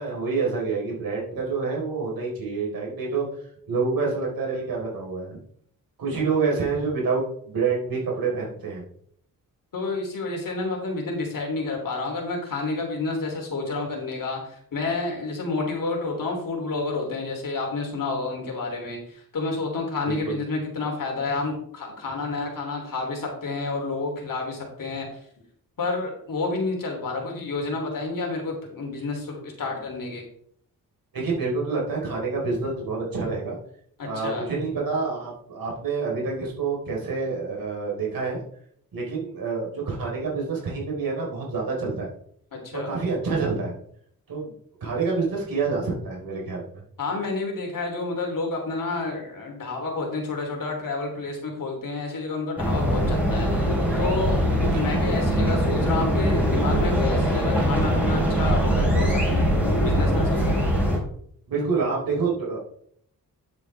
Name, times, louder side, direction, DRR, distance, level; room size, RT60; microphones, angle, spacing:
voice 1, 0.0-3.3 3.7-5.4 6.0-8.8 20.1-20.4 31.1-33.6 34.0-38.4 38.9-42.1 42.7-43.7 44.3-44.5 44.8-46.6 54.5-54.9 61.5-62.6, right 4 dB, 75° right, -2 dB, 4.2 m, -27 dB
voice 2, 9.7-25.1 25.8-30.2 34.0-34.4 42.5-42.9 47.0-53.5 54.0-54.4 54.7-59.5 59.8-60.6, left 3 dB, 65° left, 1 dB, 3.3 m, -30 dB
sound 1, 52.6-61.0, equal, 5° right, 4.3 m, -22 dB
10.0 x 8.3 x 3.5 m, 0.65 s
wide cardioid pair, 115°, 36 cm